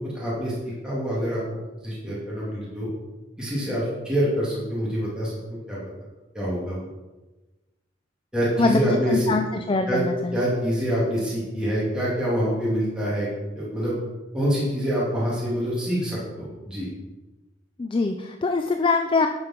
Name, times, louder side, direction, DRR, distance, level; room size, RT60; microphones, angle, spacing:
voice 1, 0.0-1.4 1.8-2.9 3.4-5.8 6.3-6.8 8.3-9.4 9.9-10.0 10.3-13.3 13.5-13.9 14.3-16.9, equal, 5° right, -8 dB, 2.7 m, -26 dB
voice 2, 8.6-10.4 17.8-19.3, left 3 dB, 25° left, 5 dB, 0.4 m, -23 dB
10.0 x 5.3 x 5.9 m, 1.1 s
head